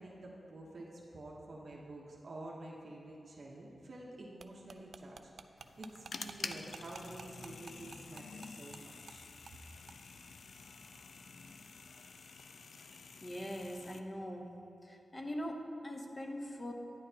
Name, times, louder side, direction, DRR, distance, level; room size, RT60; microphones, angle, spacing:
voice 1, 0.0-5.3 5.8-9.2, right 1 dB, 55° right, -3 dB, 1.0 m, -49 dB
sound 1, 4.4-8.8 9.1-9.2 9.5-9.6 9.9-10.0, right 5 dB, 80° right, 0.3 m, -51 dB
sound 2, 5.6-14.0, left 4 dB, 75° left, 0.4 m, -49 dB
voice 2, 13.2-14.6 14.8-16.7, equal, 25° left, 2 dB, 0.9 m, -42 dB
11.5 x 10.0 x 2.8 m, 2.9 s
wide cardioid pair, 130°, 0 cm